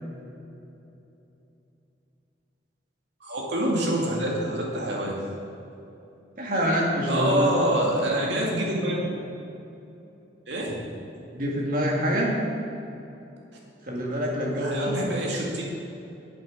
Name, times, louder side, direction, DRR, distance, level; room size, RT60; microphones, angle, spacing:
voice 1, 3.2-5.2 7.1-9.2 10.5-10.8 14.6-15.6, right 1 dB, 75° right, -2 dB, 2.3 m, -26 dB
voice 2, 6.4-7.5 11.3-12.3 13.8-15.0, equal, 45° right, -2 dB, 2.0 m, -25 dB
9.0 x 8.1 x 6.3 m, 2.9 s
head